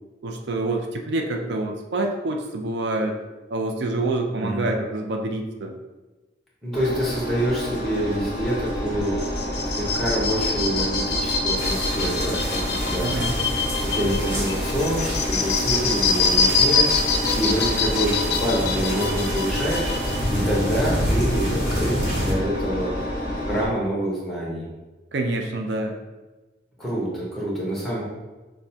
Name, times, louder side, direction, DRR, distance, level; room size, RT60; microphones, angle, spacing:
voice 1, 0.2-3.2 3.5-5.8 13.0-13.4 25.1-26.0, right 2 dB, 75° right, 3 dB, 0.4 m, -26 dB
voice 2, 6.6-9.4 9.7-13.4 13.8-19.9 20.3-22.9 23.5-24.7 26.8-28.0, equal, ahead, -6 dB, 0.9 m, -27 dB
Engine, 6.7-23.7, equal, 25° right, 1.3 m, -29 dB
sound 1, 9.0-20.3, left 4 dB, 60° left, 0.4 m, -25 dB
sound 2, 11.6-22.3, equal, 45° right, 1.1 m, -29 dB
6.1 x 2.1 x 2.7 m, 1.2 s
head